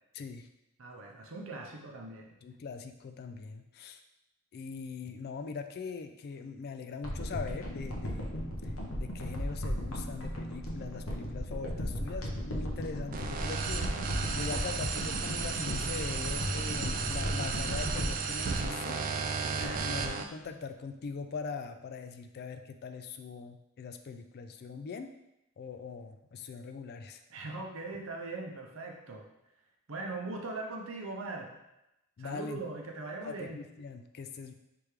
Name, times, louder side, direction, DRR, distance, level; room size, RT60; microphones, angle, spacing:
voice 1, 0.1-0.5 2.4-4.0 4.5-14.0 14.3-19.0 19.5-25.1 25.6-27.2 32.2-32.6 33.2-34.5, left 5 dB, 45° left, 7 dB, 0.3 m, -41 dB
voice 2, 0.8-2.4 19.4-19.9 27.3-29.2 29.9-31.5 32.2-33.6, right 3 dB, 60° right, 1 dB, 0.7 m, -40 dB
sound 1, 7.0-19.5 19.8-19.9, equal, 70° left, 0.9 m, -36 dB
sound 2, 13.1-20.2, right 5 dB, 40° right, 0.3 m, -34 dB
3.4 x 3.3 x 4.7 m, 0.89 s
head